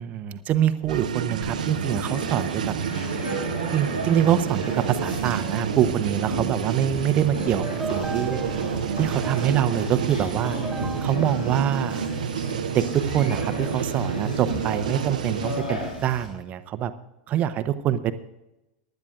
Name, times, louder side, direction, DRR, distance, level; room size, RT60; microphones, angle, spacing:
voice 1, 0.0-2.7 3.7-8.4 9.0-10.6 11.0-12.0 12.7-16.9 17.3-18.1, right 10 dB, 35° right, 12 dB, 0.9 m, -25 dB
sound 1, 0.9-15.6, right 8 dB, 70° right, 0.7 m, -30 dB
Conversation, 1.4-16.3, right 1 dB, 85° left, 6.2 m, -33 dB
sound 2, 7.4-12.7, right 4 dB, 10° right, 0.6 m, -39 dB
24.0 x 12.0 x 2.6 m, 0.97 s
figure-of-eight pair, 85°, 4 cm